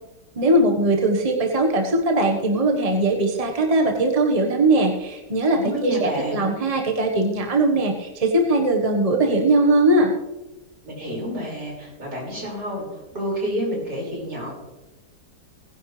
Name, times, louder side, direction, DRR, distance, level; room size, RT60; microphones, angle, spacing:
voice 1, 0.4-10.1, right 2 dB, 25° right, 2 dB, 1.3 m, -20 dB
voice 2, 5.5-6.6 10.8-14.5, equal, 65° right, -4 dB, 6.3 m, -29 dB
19.0 x 10.5 x 3.3 m, 1.0 s
omnidirectional pair, 1.9 m